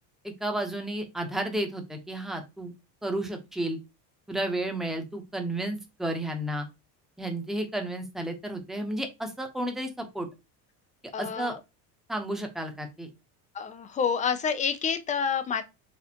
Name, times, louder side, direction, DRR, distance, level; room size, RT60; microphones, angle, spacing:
voice 1, 0.2-2.7 3.0-3.8 4.3-6.7 7.2-10.3 11.2-11.6 12.1-13.1, right 1 dB, ahead, 0.7 m, -32 dB
voice 2, 11.1-11.6 13.5-15.6, left 6 dB, 20° left, 0.3 m, -28 dB
4.3 x 3.5 x 2.8 m
cardioid pair, 140°, 41 cm